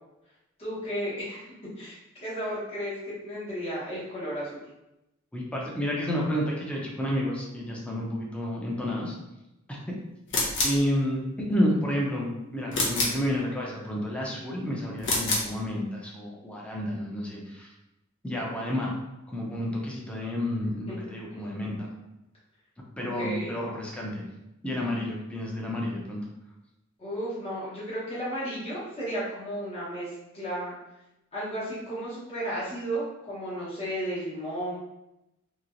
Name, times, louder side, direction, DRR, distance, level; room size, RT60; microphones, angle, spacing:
voice 1, 0.6-4.6 21.3-21.4 23.2-23.5 27.0-30.7 31.3-34.9, equal, 30° left, -10 dB, 1.0 m, -34 dB
voice 2, 5.3-9.2 9.7-9.9 10.6-17.7 18.2-19.0 19.3-21.9 23.0-24.3 24.6-26.2, equal, 5° left, -3 dB, 0.6 m, -30 dB
sound 1, 10.3-10.8 12.7-13.2 15.0-15.5, left 2 dB, 60° left, 0.7 m, -26 dB
3.0 x 2.8 x 2.6 m, 0.92 s
head